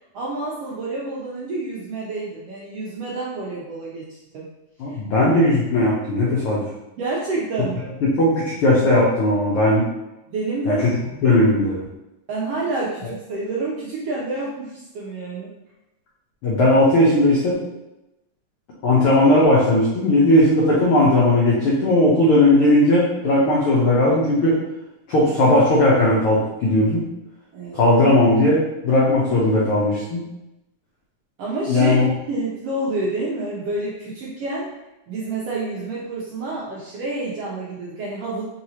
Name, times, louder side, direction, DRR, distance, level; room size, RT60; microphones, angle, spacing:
voice 1, 0.1-4.5 4.9-5.0 7.0-7.9 10.3-10.8 12.3-15.5 27.5-27.8 31.4-34.7 35.1-38.4, right 2 dB, 75° right, -5 dB, 1.4 m, -28 dB
voice 2, 4.8-6.6 8.0-9.9 10.7-10.8 11.2-11.8 16.4-17.6 18.8-24.6 25.1-27.0 27.7-30.2 31.7-32.1, left 1 dB, 80° left, -5 dB, 1.2 m, -17 dB
4.6 x 3.9 x 2.8 m, 0.94 s
omnidirectional pair, 3.5 m